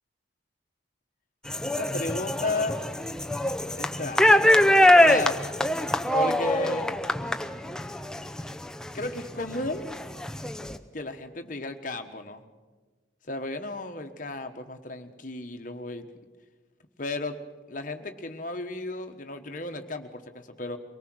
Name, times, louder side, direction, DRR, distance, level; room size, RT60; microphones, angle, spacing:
sound 1, 1.5-9.2 9.6-10.8, left 1 dB, 5° left, 0.5 m, -23 dB
voice 1, 1.7-2.8 3.8-4.6 5.0-5.4 6.1-6.9 8.9-9.9 10.9-12.4 13.3-16.0 17.0-17.4 17.7-20.8, left 2 dB, 45° left, 6 dB, 1.3 m, -33 dB
24.0 x 18.5 x 6.3 m, 1.3 s
head